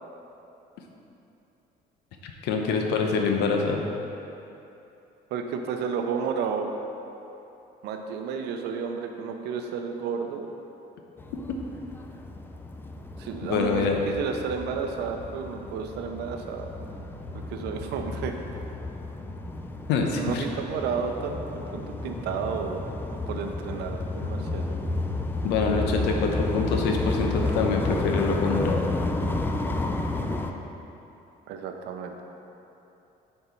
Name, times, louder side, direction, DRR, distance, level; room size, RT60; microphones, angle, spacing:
voice 1, 2.4-3.8 13.5-14.0 19.9-20.4 25.4-28.8, left 4 dB, 85° left, 2 dB, 0.8 m, -25 dB
voice 2, 5.3-6.7 7.8-10.5 13.2-16.8 17.3-18.6 20.2-21.3 21.7-22.8 23.1-24.9 31.5-32.2, right 6 dB, 85° right, 4 dB, 0.6 m, -32 dB
sound 1, 11.2-30.5, left 2 dB, 10° left, 0.4 m, -32 dB
6.7 x 4.5 x 4.5 m, 2.9 s
cardioid pair, 110°, 17 cm